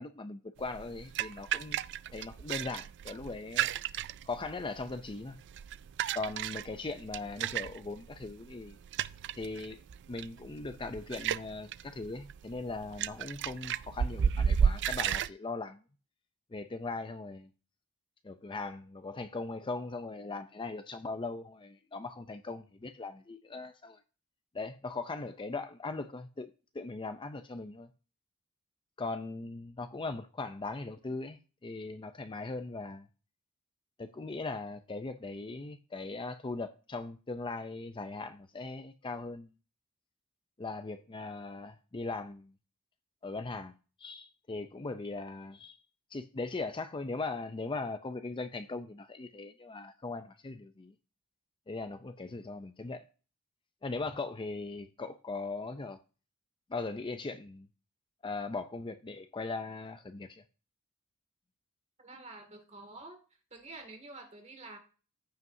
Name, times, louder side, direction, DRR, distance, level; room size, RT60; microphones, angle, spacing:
voice 1, 0.0-3.7 4.2-5.4 6.1-8.8 9.4-9.8 10.1-15.8 16.5-17.5 18.2-24.0 24.5-26.5 26.7-27.9 29.0-33.1 34.0-39.5 40.6-42.5 43.2-43.7 44.0-45.8 46.1-50.9 51.7-53.0 53.8-56.0 56.7-57.7 58.2-60.4, left 3 dB, 20° left, 0.5 m, -39 dB
sound 1, 0.6-15.3, right 8 dB, 50° right, 0.3 m, -34 dB
voice 2, 62.0-63.2 63.5-64.8, right 2 dB, 30° right, 2.2 m, -48 dB
15.0 x 5.5 x 2.7 m
head